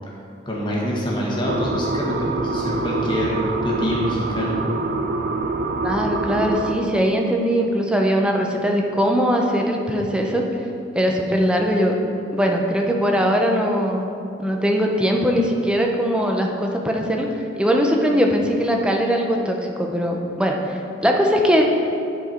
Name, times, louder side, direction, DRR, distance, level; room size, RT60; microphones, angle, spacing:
voice 1, 0.5-4.6, equal, 25° left, -4 dB, 1.5 m, -25 dB
sound 1, 1.5-6.8, right 2 dB, 50° right, 0.5 m, -25 dB
voice 2, 5.8-10.5 10.9-11.9 12.3-14.1 14.4-17.3 17.6-21.6, equal, 5° right, 1 dB, 0.7 m, -20 dB
11.0 x 4.7 x 4.4 m, 2.6 s
head